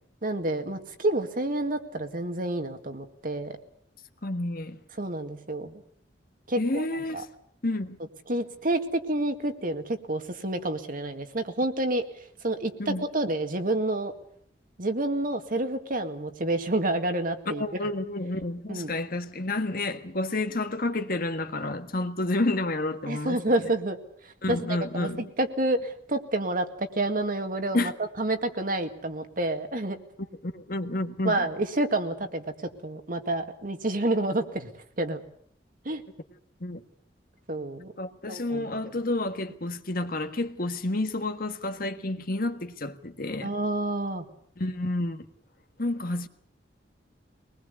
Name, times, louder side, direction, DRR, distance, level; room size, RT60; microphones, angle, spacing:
voice 1, 0.2-3.5 5.0-5.7 6.5-6.9 7.1-7.2 8.3-12.0 12.4-14.1 14.8-17.6 18.7-18.9 23.1-24.0 24.5-27.9 28.2-30.0 31.2-32.4 32.8-34.7 35.0-35.2 35.9-36.0 37.5-37.9 38.3-38.7 43.4-44.3, right 1 dB, 50° right, 2.1 m, -29 dB
voice 2, 4.2-4.8 6.6-7.3 7.6-8.0 12.8-13.0 17.5-23.7 24.4-25.2 27.7-27.9 30.4-31.5 36.6-36.8 38.0-43.5 44.6-45.2 45.8-46.3, left 2 dB, 55° left, 1.6 m, -30 dB
23.5 x 20.0 x 8.3 m
head